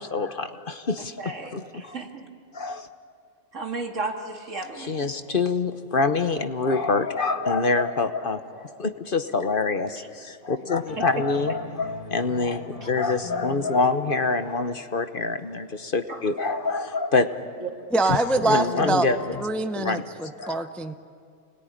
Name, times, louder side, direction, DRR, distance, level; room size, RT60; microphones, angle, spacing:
voice 1, 0.0-1.2 1.5-2.0 2.5-2.9 4.8-17.5 18.1-18.2 18.4-19.2 19.8-20.7, left 3 dB, 45° left, 9 dB, 1.1 m, -26 dB
voice 2, 1.2-2.3 3.5-5.1 11.0-11.2 12.8-12.9 16.1-16.2 17.6-17.7, right 3 dB, 75° right, 2 dB, 2.6 m, -34 dB
sound 1, 10.7-15.5 18.4-19.4, left 4 dB, 25° left, 1.8 m, -40 dB
voice 3, 17.9-19.1 19.4-20.9, right 2 dB, ahead, 9 dB, 0.6 m, -24 dB
29.0 x 21.0 x 10.0 m, 2.4 s
omnidirectional pair, 1.3 m